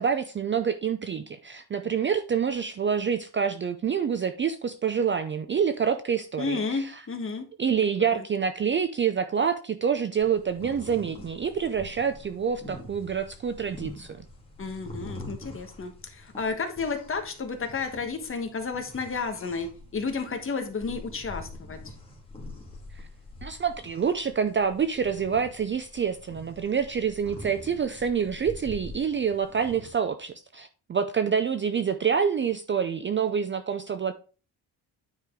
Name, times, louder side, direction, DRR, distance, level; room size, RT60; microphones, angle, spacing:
voice 1, 0.0-6.9 7.6-14.2 23.4-34.1, right 7 dB, 30° right, 0.4 m, -27 dB
voice 2, 6.4-7.5 8.0-8.2 14.6-21.9, left 4 dB, 30° left, 1.3 m, -32 dB
sound 1, 10.2-29.9, left 1 dB, 15° left, 2.1 m, -45 dB
9.5 x 4.9 x 3.7 m
cardioid pair, 155°, 40 cm